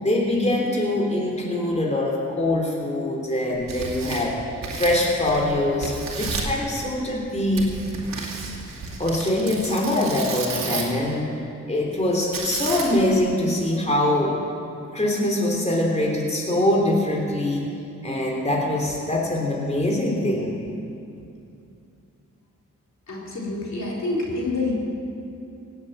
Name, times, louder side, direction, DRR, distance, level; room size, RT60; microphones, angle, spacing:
voice 1, 0.0-4.4 4.7-7.7 9.0-11.3 11.7-14.4 14.9-17.6 18.0-20.5, left 1 dB, 20° left, -2 dB, 3.4 m, -23 dB
Tearing, 3.5-5.5 5.8-6.6 7.5-11.0 12.3-13.1, right 4 dB, 90° right, 2.3 m, -32 dB
voice 2, 23.1-24.7, left 3 dB, 55° left, -4 dB, 4.0 m, -27 dB
17.0 x 8.1 x 9.0 m, 2.7 s
cardioid pair, 50°, 32 cm